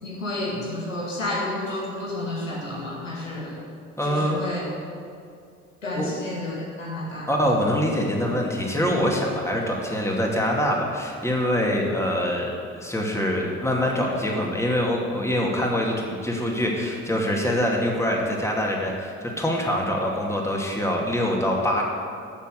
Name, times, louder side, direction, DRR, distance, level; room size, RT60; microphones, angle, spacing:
voice 1, 0.0-3.6 4.0-4.6 5.8-7.3, left 1 dB, 85° left, -4 dB, 1.8 m, -31 dB
voice 2, 4.0-4.4 6.0-6.2 7.3-21.8, equal, 5° left, -1 dB, 2.5 m, -24 dB
13.0 x 6.9 x 6.9 m, 2.3 s
figure-of-eight pair, 45°, 38 cm